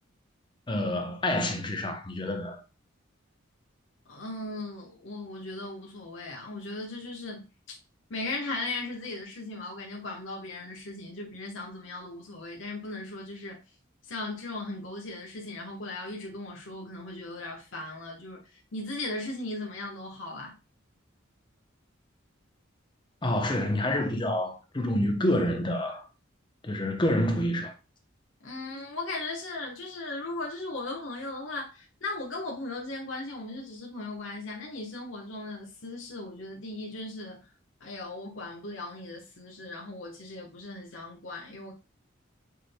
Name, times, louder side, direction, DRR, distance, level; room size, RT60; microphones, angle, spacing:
voice 1, 0.7-2.6 23.2-26.1 26.6-27.7, left 1 dB, 25° left, 0.7 m, -28 dB
voice 2, 4.1-7.8 8.1-13.6 14.0-20.5 28.4-37.5 37.8-41.7, left 2 dB, 70° left, 1.1 m, -37 dB
6.6 x 3.4 x 2.2 m
head